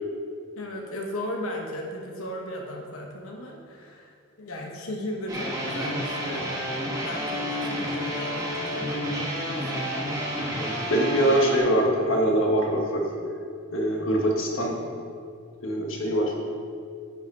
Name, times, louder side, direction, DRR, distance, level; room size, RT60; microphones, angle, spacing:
voice 1, 0.6-4.1 4.4-6.6 7.0-10.0, left 1 dB, 90° left, 0 dB, 1.0 m, -36 dB
sound 1, 5.3-11.6, equal, 15° right, 1.4 m, -30 dB
voice 2, 10.5-13.0 13.7-14.8 15.6-16.3, right 1 dB, 70° left, 0 dB, 1.5 m, -23 dB
10.5 x 5.4 x 4.6 m, 2.3 s
head